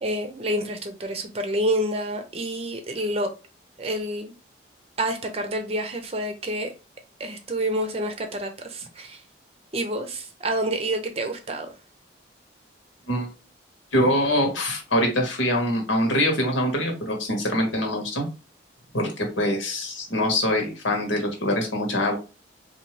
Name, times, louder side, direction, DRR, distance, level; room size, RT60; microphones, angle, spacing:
voice 1, 0.0-3.3 3.8-4.3 5.0-6.7 7.2-9.2 9.7-11.7, right 1 dB, 30° right, 0.6 m, -28 dB
voice 2, 13.9-18.3 18.9-22.2, left 1 dB, 85° left, 1.4 m, -24 dB
3.9 x 2.7 x 3.1 m
head